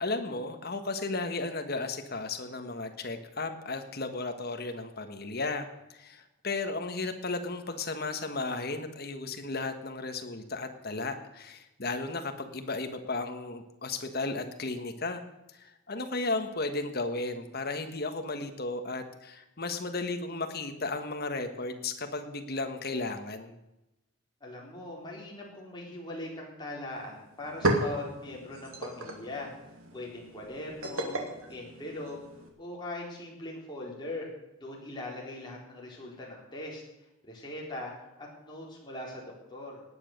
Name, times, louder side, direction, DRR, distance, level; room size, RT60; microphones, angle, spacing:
voice 1, 0.0-15.2 15.5-23.5, left 3 dB, 45° left, 7 dB, 1.4 m, -34 dB
voice 2, 24.4-29.5 29.9-31.2 31.5-32.2 32.6-34.3 34.6-36.8 37.2-37.9 38.2-39.8, left 1 dB, 20° left, -3 dB, 4.2 m, -40 dB
sound 1, 26.9-27.0 27.3-32.5, right 1 dB, 75° right, 2.5 m, -34 dB
18.5 x 9.5 x 6.7 m, 0.93 s
head